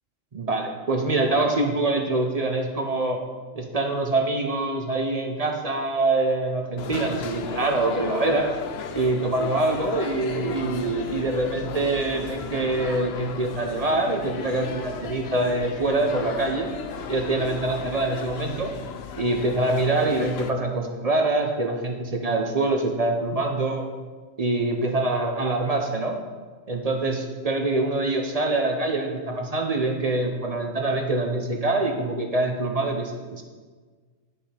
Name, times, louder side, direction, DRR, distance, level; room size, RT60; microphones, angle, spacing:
voice 1, 0.3-3.2 3.5-8.5 8.9-16.7 17.1-18.7 19.2-23.8 24.4-26.2 26.7-33.4, right 2 dB, 40° right, 3 dB, 0.6 m, -25 dB
sound 1, 6.8-20.5, left 6 dB, 60° left, 0.7 m, -35 dB
11.5 x 5.6 x 3.4 m, 1.4 s
omnidirectional pair, 1.3 m